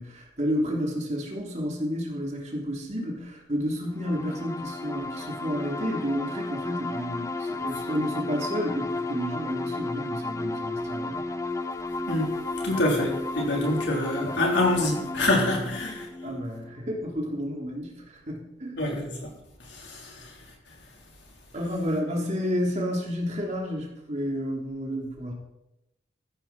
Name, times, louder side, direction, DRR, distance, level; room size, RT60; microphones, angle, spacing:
voice 1, 0.0-11.2 16.2-17.9 18.3-18.7 21.5-25.3, equal, 35° right, -1 dB, 3.3 m, -31 dB
sound 1, 4.0-17.5, left 2 dB, 15° left, 0.6 m, -33 dB
voice 2, 12.1-12.4 12.6-16.1 18.8-19.3 19.6-20.3, left 1 dB, 65° left, 0 dB, 3.8 m, -26 dB
14.5 x 12.5 x 4.4 m, 0.88 s
head